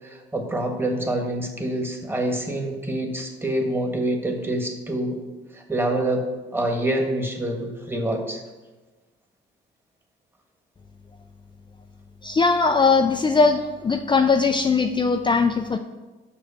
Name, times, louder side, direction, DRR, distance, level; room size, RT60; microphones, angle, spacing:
voice 1, 0.0-5.2 5.5-6.3 6.5-8.4, right 1 dB, 10° right, 2 dB, 1.5 m, -26 dB
voice 2, 12.2-15.8, left 4 dB, 25° left, 6 dB, 0.4 m, -20 dB
6.3 x 5.0 x 6.9 m, 1.2 s
cardioid pair, 90°, 20 cm